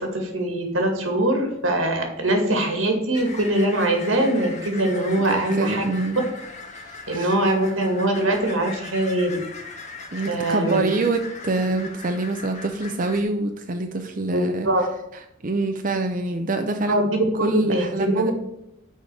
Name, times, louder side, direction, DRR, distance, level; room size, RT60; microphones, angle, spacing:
voice 1, 0.0-5.9 7.1-9.4 10.3-10.8 11.7-11.8 14.3-14.9 16.9-18.3, right 1 dB, 90° right, 3 dB, 2.1 m, -22 dB
sound 1, 3.1-13.2, left 3 dB, 35° left, 1.4 m, -39 dB
voice 2, 5.2-6.2 7.1-7.3 10.1-14.7 15.4-17.0 17.4-18.3, right 2 dB, 45° right, 5 dB, 0.6 m, -25 dB
6.4 x 5.1 x 6.9 m, 0.83 s
head